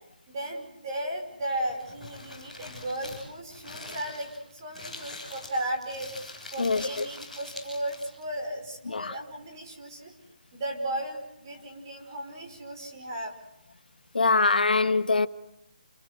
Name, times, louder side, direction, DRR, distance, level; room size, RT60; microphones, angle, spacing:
voice 1, 0.3-6.1 6.5-10.1 10.5-13.3, right 1 dB, 25° right, 5.3 m, -35 dB
Crumpling crinkling, 1.5-8.2, left 2 dB, ahead, 7.3 m, -44 dB
voice 2, 6.6-7.1 8.9-9.1 14.1-15.3, left 3 dB, 85° left, 1.6 m, -23 dB
29.5 x 20.5 x 7.9 m
hypercardioid pair, 175°, 5 cm